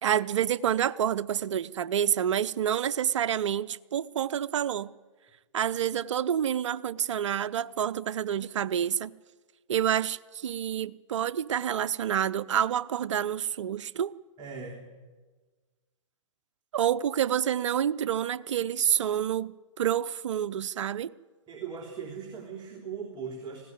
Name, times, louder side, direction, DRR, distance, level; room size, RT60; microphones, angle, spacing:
voice 1, 0.0-4.9 5.5-9.1 9.7-14.1 16.7-21.1, right 9 dB, 65° right, 0.7 m, -28 dB
voice 2, 14.4-14.9 21.5-23.6, right 6 dB, 25° right, 3.2 m, -39 dB
19.5 x 16.5 x 9.4 m
figure-of-eight pair, 115°, 17 cm